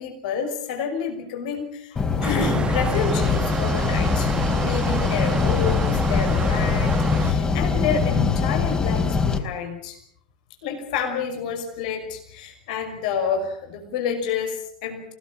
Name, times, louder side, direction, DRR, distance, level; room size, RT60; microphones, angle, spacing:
voice 1, 0.0-10.0 10.6-15.1, left 6 dB, 60° left, 4 dB, 5.9 m, -29 dB
sound 1, 2.0-9.4, left 5 dB, 20° left, 4.3 m, -22 dB
sound 2, 2.2-7.3, right 5 dB, 20° right, 2.0 m, -29 dB
29.5 x 18.5 x 7.4 m, 0.66 s
hypercardioid pair, 95°, 5 cm